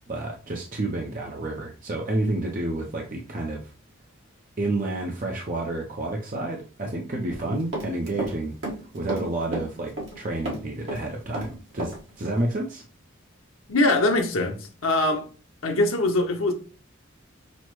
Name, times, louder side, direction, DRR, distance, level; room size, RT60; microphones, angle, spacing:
voice 1, 0.1-3.6 4.6-8.5 8.9-12.8, right 2 dB, 40° right, 0.6 m, -30 dB
Run, 7.3-8.4 8.6-10.2 10.5-12.0 12.2-12.4, right 1 dB, 65° right, 1.4 m, -32 dB
voice 2, 13.7-15.3 15.6-16.5, left 2 dB, 80° left, 0.9 m, -22 dB
6.1 x 2.1 x 3.0 m
head